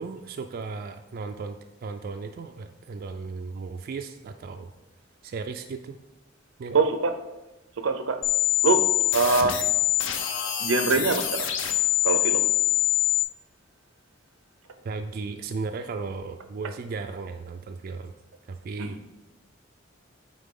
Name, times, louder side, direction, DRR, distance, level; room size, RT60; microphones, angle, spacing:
voice 1, 0.0-4.7 5.2-6.0 6.6-6.8 14.8-18.1 18.5-19.2, right 4 dB, 50° right, 6 dB, 0.3 m, -35 dB
voice 2, 6.7-7.1 7.8-8.2 8.6-8.9 9.1-9.6 10.6-11.5 12.0-12.5 18.8-19.0, right 3 dB, 85° right, 9 dB, 0.6 m, -23 dB
sound 1, 8.2-13.2, left 15 dB, 65° left, 0.7 m, -24 dB
8.8 x 3.7 x 3.7 m, 0.99 s
head